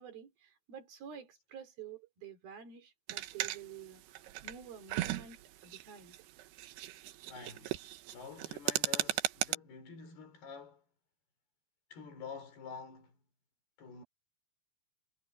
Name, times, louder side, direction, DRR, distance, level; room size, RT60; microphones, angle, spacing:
voice 1, 0.0-6.2, right 7 dB, 65° right, 5.6 m, -50 dB
sound 1, 3.1-9.6, right 14 dB, 90° right, 3.2 m, -37 dB
voice 2, 7.3-10.8 11.9-13.2 13.8-14.0, left 5 dB, 75° left, 6.4 m, -48 dB
omnidirectional pair, 4.6 m